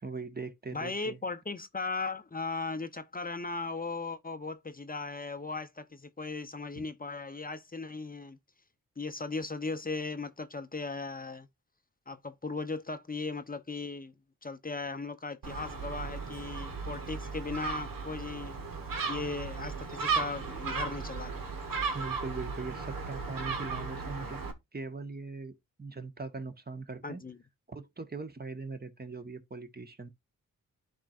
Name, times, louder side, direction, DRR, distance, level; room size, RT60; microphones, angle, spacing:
voice 1, 0.0-1.2 6.8-6.9 21.9-24.4 24.7-27.2 27.7-30.1, right 3 dB, 25° right, 1.4 m, -40 dB
voice 2, 0.7-8.4 9.0-11.5 12.1-14.1 14.4-18.5 19.1-21.5 27.0-27.4, left 3 dB, 25° left, 0.7 m, -37 dB
Gull seagull, 15.4-24.5, right 5 dB, 70° right, 1.4 m, -36 dB
11.0 x 4.4 x 2.5 m
supercardioid pair, 40°, 36 cm